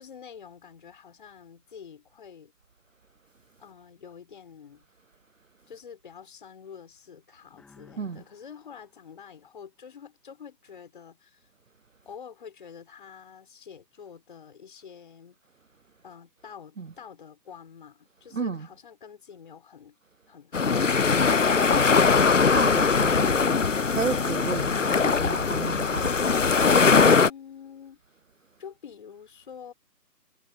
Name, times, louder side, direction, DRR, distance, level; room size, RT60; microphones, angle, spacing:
voice 1, 0.0-2.5 3.6-4.8 5.7-11.5 12.1-15.4 16.0-20.0 27.2-28.0 28.6-29.7, left 7 dB, 30° left, 4.0 m, -47 dB
sound 1, 7.5-10.2, left 4 dB, ahead, 2.6 m, -59 dB
voice 2, 18.3-18.7 22.5-23.6 23.9-26.4, right 4 dB, 50° right, 0.6 m, -32 dB
sound 2, 20.5-27.3, left 5 dB, 50° left, 0.6 m, -21 dB
figure-of-eight pair, 165°, 50 cm